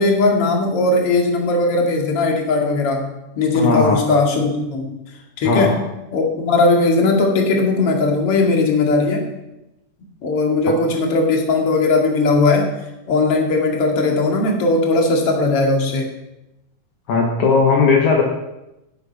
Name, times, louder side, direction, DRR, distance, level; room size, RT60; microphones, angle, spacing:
voice 1, 0.0-5.0 5.4-5.8 6.1-9.2 10.2-12.7 13.1-16.1, left 3 dB, 50° left, 1 dB, 3.0 m, -18 dB
voice 2, 3.5-4.0 5.4-5.7 17.1-18.2, left 4 dB, 70° left, 0 dB, 2.8 m, -16 dB
17.0 x 8.0 x 5.9 m, 0.94 s
omnidirectional pair, 3.7 m